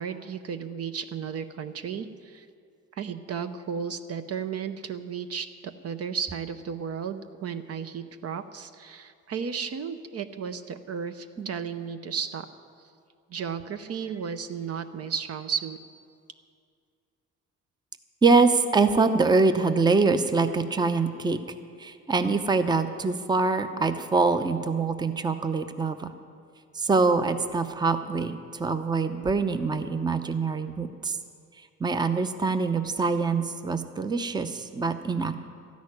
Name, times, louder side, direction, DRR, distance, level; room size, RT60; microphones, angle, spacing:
voice 1, 0.0-2.5 2.9-12.5 13.3-15.8, right 6 dB, 55° right, 10 dB, 0.7 m, -34 dB
voice 2, 18.2-21.4 21.8-26.1 26.7-31.2 31.8-35.3, right 4 dB, 15° right, 10 dB, 0.6 m, -24 dB
13.0 x 6.3 x 9.6 m, 2.3 s
cardioid pair, 90°, 30 cm